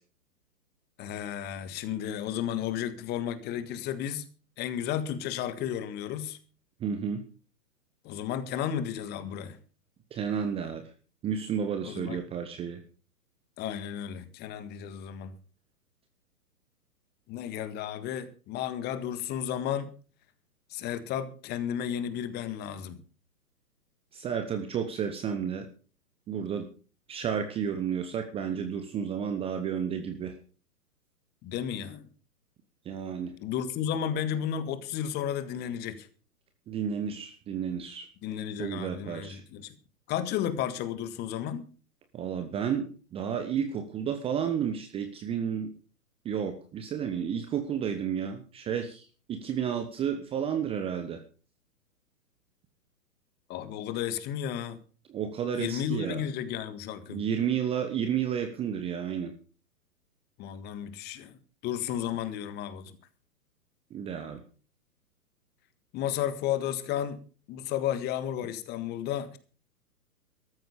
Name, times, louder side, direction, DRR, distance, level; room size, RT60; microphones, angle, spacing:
voice 1, 1.0-4.3 4.6-6.4 8.0-9.6 11.8-12.2 13.6-15.3 17.3-19.9 20.7-23.0 31.4-32.1 33.4-36.1 38.2-39.7 40.1-41.7 53.5-54.8 55.5-57.2 60.4-63.0 65.9-67.2 67.5-69.4, left 9 dB, 20° left, 12 dB, 1.6 m, -33 dB
voice 2, 6.8-7.2 10.1-10.8 11.2-12.8 24.1-25.7 26.3-26.7 27.1-30.3 32.9-33.3 36.7-38.1 38.6-39.4 42.1-45.7 46.2-49.0 49.3-51.2 55.1-56.2 57.1-59.3 63.9-64.4, right 8 dB, 10° right, 8 dB, 1.0 m, -31 dB
14.0 x 13.5 x 5.0 m, 0.39 s
figure-of-eight pair, 120°, 47 cm